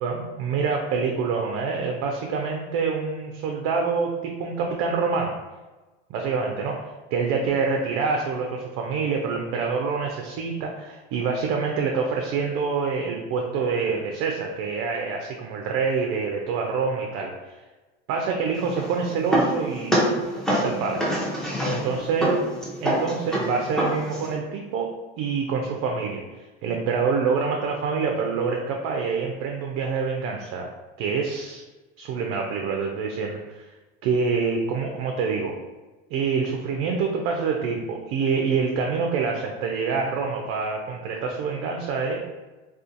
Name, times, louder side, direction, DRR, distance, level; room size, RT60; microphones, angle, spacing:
voice 1, 0.0-5.3 6.1-6.7 7.1-17.3 18.1-19.9 20.5-21.0 21.7-22.3 22.8-24.9 25.2-26.2 26.6-30.7 31.0-31.6 32.0-33.7 34.0-35.5 36.1-42.3, right 5 dB, 50° right, 1 dB, 0.4 m, -26 dB
sound 1, 18.5-24.3, equal, ahead, 0.6 m, -26 dB
2.5 x 2.4 x 2.4 m, 1.2 s
hypercardioid pair, 90°, 31 cm